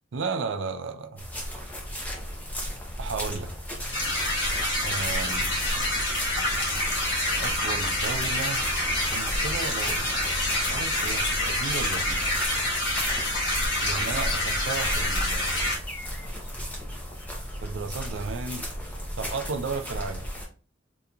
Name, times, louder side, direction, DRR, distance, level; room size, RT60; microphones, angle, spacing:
voice 1, 0.1-1.2 3.0-3.5 4.8-5.6 7.4-8.7 9.0-10.1 10.4-12.2 13.8-15.7 17.6-18.7 19.2-20.2, right 4 dB, 70° right, 0.4 m, -34 dB
sound 1, 1.2-20.5, equal, 10° left, 0.6 m, -35 dB
sound 2, 3.9-15.8, left 1 dB, 65° left, 1.2 m, -27 dB
3.9 x 2.7 x 2.3 m
head